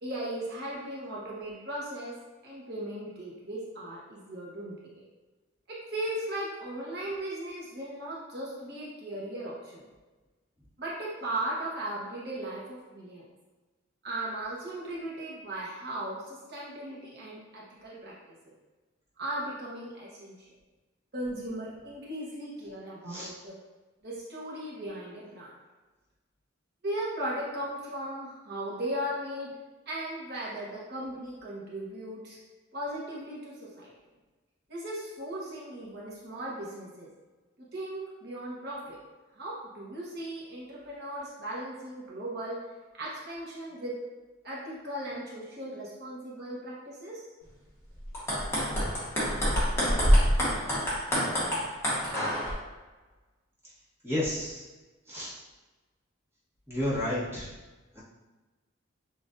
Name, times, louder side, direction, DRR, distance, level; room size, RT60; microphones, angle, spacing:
voice 1, 0.0-2.1 2.4-5.0 5.7-9.9 10.8-13.2 14.0-18.1 18.4-18.5 19.2-20.5 21.1-23.5 24.0-25.5 26.8-29.5 29.9-32.4 32.7-33.9 34.7-37.1 37.7-39.0 39.3-42.6 43.0-43.9 44.4-47.3, right 1 dB, 55° right, -6 dB, 1.0 m, -37 dB
sound 1, 48.0-52.5, equal, 15° left, 1.2 m, -26 dB
voice 2, 54.0-54.6 55.1-55.3 56.7-57.5 57.9-58.0, left 1 dB, 10° right, -9 dB, 1.2 m, -31 dB
7.1 x 2.5 x 2.6 m, 1.2 s
head